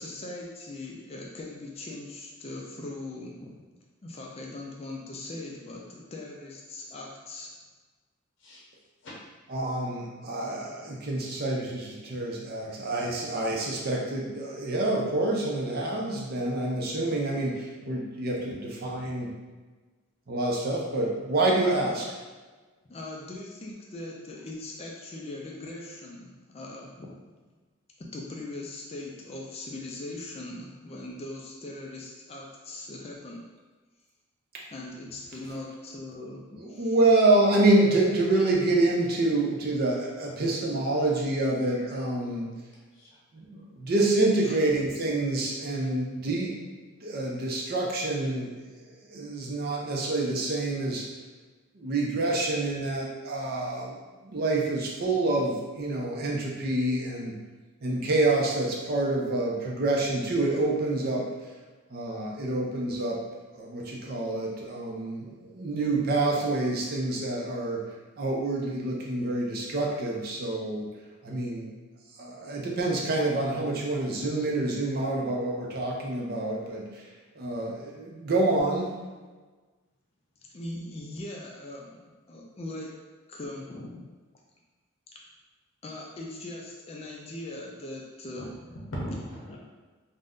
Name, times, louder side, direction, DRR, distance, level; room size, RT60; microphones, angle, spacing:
voice 1, 0.0-3.5 4.0-7.5 21.8-22.0 22.9-27.1 28.0-33.4 34.7-37.0 44.4-44.6 80.5-82.0 82.3-82.9 83.3-84.0 85.8-88.7 89.5-89.6, left 2 dB, 30° left, -2 dB, 0.4 m, -40 dB
voice 2, 9.5-19.3 20.3-22.0 36.6-42.5 43.3-46.7 47.0-48.5 49.1-51.0 51.8-54.0 54.2-57.3 57.8-61.3 61.9-63.2 63.5-67.8 68.2-70.9 71.2-71.7 72.2-77.0 77.4-78.9, right 2 dB, 50° right, -1 dB, 0.5 m, -27 dB
voice 3, 42.9-43.6 47.1-47.3 88.4-89.6, equal, 65° left, -5 dB, 0.7 m, -40 dB
2.5 x 2.1 x 3.5 m, 1.3 s
head